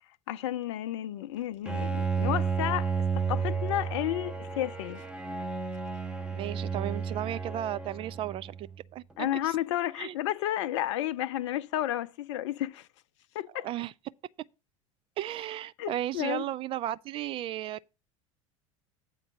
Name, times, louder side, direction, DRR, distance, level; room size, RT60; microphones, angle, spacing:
voice 1, 0.3-2.9 3.3-5.0 9.2-12.9 13.3-13.7 15.8-16.4, left 13 dB, 60° left, 0.5 m, -32 dB
Bowed string instrument, 1.6-8.8, right 5 dB, 5° right, 0.8 m, -32 dB
voice 2, 6.3-8.7 8.9-9.6 10.0-10.1 13.5-13.9 15.2-17.9, right 13 dB, 30° right, 0.3 m, -35 dB
8.0 x 3.9 x 6.9 m
figure-of-eight pair, 70°, 17 cm